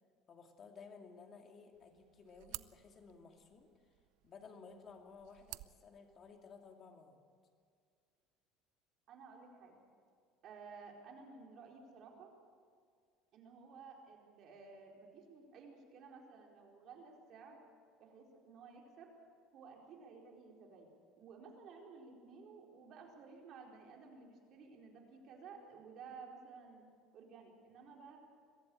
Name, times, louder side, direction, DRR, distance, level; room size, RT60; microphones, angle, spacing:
voice 1, 0.3-3.7 4.2-7.2, left 5 dB, 35° left, 3 dB, 2.6 m, -56 dB
sound 1, 1.7-6.7, right 20 dB, 75° right, 0.5 m, -54 dB
voice 2, 9.1-9.8 10.4-12.3 13.3-17.6 18.0-19.1 19.5-20.9 21.2-26.8 27.1-28.2, right 5 dB, 50° right, 0 dB, 4.5 m, -55 dB
23.0 x 15.0 x 8.6 m, 2.1 s
cardioid pair, 140°, 0 cm